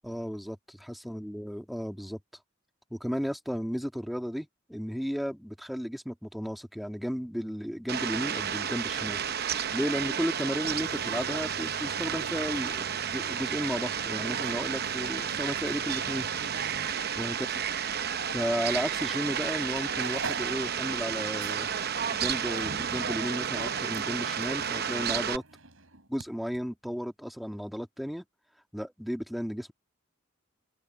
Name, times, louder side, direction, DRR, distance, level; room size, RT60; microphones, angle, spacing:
voice 1, 0.0-2.2 2.9-9.2 9.7-16.3 17.2-17.3 18.3-21.7 22.1-25.4 26.1-28.2 28.7-29.7, equal, ahead, 1.8 m, -34 dB
Fowl, 7.9-25.4, right 8 dB, 50° right, 0.8 m, -31 dB
sound 1, 10.3-18.1 18.4-18.5 19.3-19.5 19.8-26.3 26.5-26.6, right 3 dB, 75° right, 5.7 m, -47 dB
open air
head